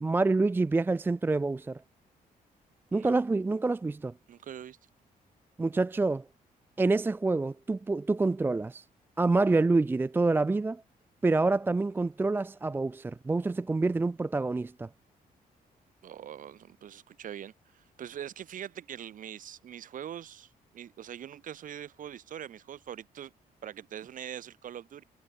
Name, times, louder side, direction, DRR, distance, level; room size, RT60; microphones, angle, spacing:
voice 1, 0.0-1.8 2.9-4.1 5.6-6.2 6.8-8.8 9.2-10.8 11.2-14.9, right 3 dB, 15° right, 0.5 m, -27 dB
voice 2, 4.3-4.8 16.0-23.3 23.6-25.0, right 10 dB, 60° right, 7.2 m, -43 dB
cardioid pair, 165°, 15 cm